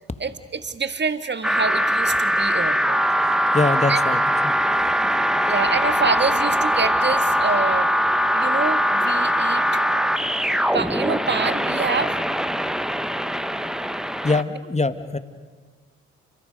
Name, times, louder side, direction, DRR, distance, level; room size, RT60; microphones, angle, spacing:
voice 1, 0.2-3.0 3.9-4.0 5.5-7.9 8.3-9.8 10.7-12.2, right 4 dB, 30° right, 10 dB, 1.7 m, -26 dB
sound 1, 1.4-14.4, equal, ahead, 1.1 m, -21 dB
voice 2, 3.2-4.5 14.2-15.2, left 3 dB, 20° left, 10 dB, 1.7 m, -24 dB
29.5 x 26.0 x 5.2 m, 1.5 s
hypercardioid pair, 40°, 37 cm